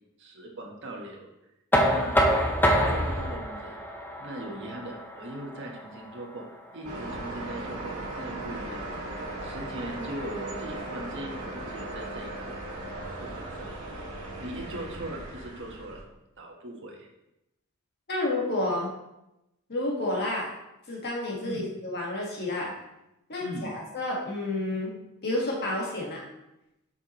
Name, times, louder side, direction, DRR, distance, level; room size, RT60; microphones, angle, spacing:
voice 1, 0.2-1.3 1.8-2.4 2.7-3.7 4.2-6.4 6.7-8.9 9.4-12.6 13.2-13.7 14.4-16.0 16.4-17.1 21.4-21.6 23.4-23.7, right 1 dB, 55° right, 0 dB, 1.3 m, -40 dB
Knock, 1.7-7.5, equal, 10° left, 0.6 m, -27 dB
sound 1, 6.8-16.0, right 1 dB, 80° right, 1.8 m, -37 dB
voice 2, 18.1-18.9 19.7-20.5 20.9-22.7 23.3-24.9 25.2-26.2, left 2 dB, 50° left, -3 dB, 1.6 m, -30 dB
7.3 x 5.7 x 3.1 m, 0.90 s
head